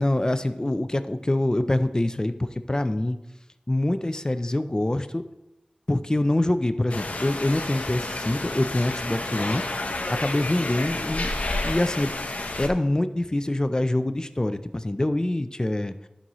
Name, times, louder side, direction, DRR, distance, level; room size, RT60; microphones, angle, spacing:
voice 1, 0.0-3.2 3.7-5.2 5.9-9.6 10.2-11.3 11.6-12.1 12.6-15.9, left 1 dB, 30° left, 11 dB, 0.4 m, -25 dB
sound 1, 6.9-12.7, left 2 dB, 70° left, 0.8 m, -30 dB
11.0 x 5.5 x 3.0 m, 0.95 s
wide cardioid pair, 50°, 3 cm